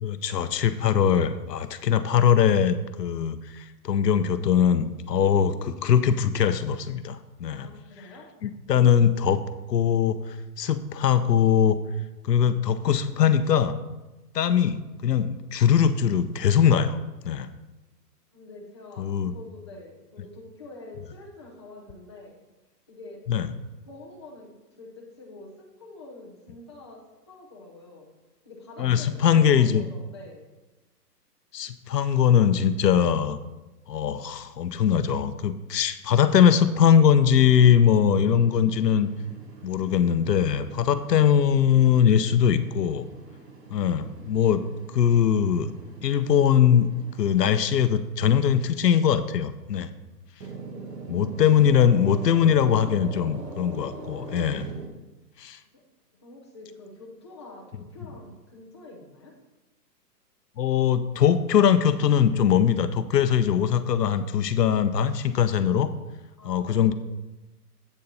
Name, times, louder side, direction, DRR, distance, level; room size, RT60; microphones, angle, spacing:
voice 1, 0.0-7.7 8.4-9.4 9.7-11.8 12.2-13.8 14.3-17.0 17.2-17.5 19.0-19.3 23.3-23.5 28.8-29.8 31.5-33.4 33.9-39.1 39.6-43.1 43.7-44.6 44.9-45.7 46.0-46.9 47.2-49.9 51.1-54.7 55.4-55.6 60.6-65.9 66.4-66.9, left 8 dB, 75° left, 11 dB, 0.8 m, -21 dB
voice 2, 7.5-8.3 8.7-8.9 18.3-22.3 22.9-23.2 23.9-28.1 28.4-30.5 50.7-51.3 55.7-55.8 56.2-59.3 66.4-66.9, left 2 dB, 15° left, -3 dB, 0.7 m, -46 dB
sound 1, 37.3-47.8 50.4-54.9, right 4 dB, 75° right, 2.1 m, -43 dB
8.3 x 6.7 x 4.1 m, 1.1 s
hypercardioid pair, 175°, 49 cm